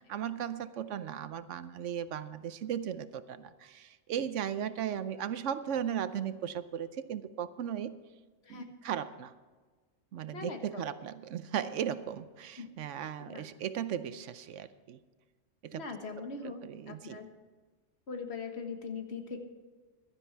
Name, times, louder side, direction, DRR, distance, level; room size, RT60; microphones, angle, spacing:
voice 1, 0.0-8.0 8.5-9.3 10.1-15.0 15.6-15.8 16.4-17.2, right 9 dB, 75° right, 13 dB, 1.0 m, -37 dB
voice 2, 10.3-10.9 12.6-12.7 13.2-13.5 15.8-17.3 18.1-19.4, left 4 dB, 60° left, 5 dB, 1.6 m, -41 dB
15.5 x 12.0 x 4.6 m, 1.4 s
omnidirectional pair, 1.3 m